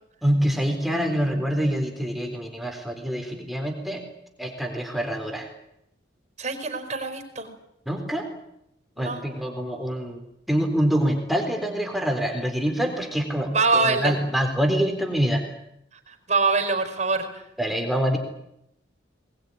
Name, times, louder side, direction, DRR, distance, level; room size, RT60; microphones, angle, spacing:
voice 1, 0.2-4.0 4.4-5.5 7.9-8.3 9.0-15.4 17.6-18.2, equal, ahead, 3 dB, 3.9 m, -25 dB
voice 2, 6.4-7.5 9.0-9.2 13.5-14.1 16.1-17.3, right 3 dB, 40° right, 5 dB, 4.9 m, -24 dB
22.0 x 20.5 x 9.9 m, 0.80 s
head